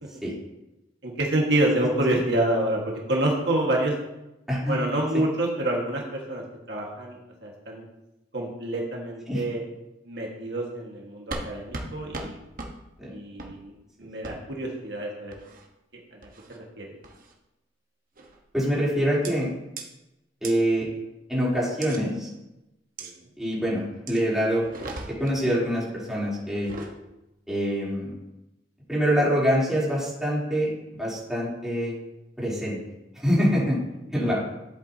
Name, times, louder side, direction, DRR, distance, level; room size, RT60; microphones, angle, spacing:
voice 1, 1.0-3.9 4.7-7.8 8.3-9.6 10.0-12.3 13.1-13.7 14.0-15.3 16.1-16.9 23.0-23.1 34.2-34.3, right 1 dB, 65° right, -1 dB, 1.6 m, -27 dB
sound 1, 11.3-11.5 11.7-11.9 12.1-12.3 12.6-12.7 13.4-13.5 14.2-14.3 15.3-15.7 16.2-16.6 17.0-17.3 18.2-18.4 19.2-19.3 19.8-19.9 20.4-20.5 21.8-22.0 23.0-23.1 24.1-24.2 24.6-25.4 26.5-26.9, right 2 dB, 50° right, 1.1 m, -37 dB
voice 2, 18.5-19.5 20.4-20.9 21.3-22.3 23.4-24.6 25.1-26.7 27.5-28.1 28.9-30.7 31.0-31.9 32.4-32.8 33.1-33.8 34.1-34.4, equal, 5° right, -8 dB, 3.1 m, -25 dB
11.0 x 8.1 x 2.8 m, 0.96 s
head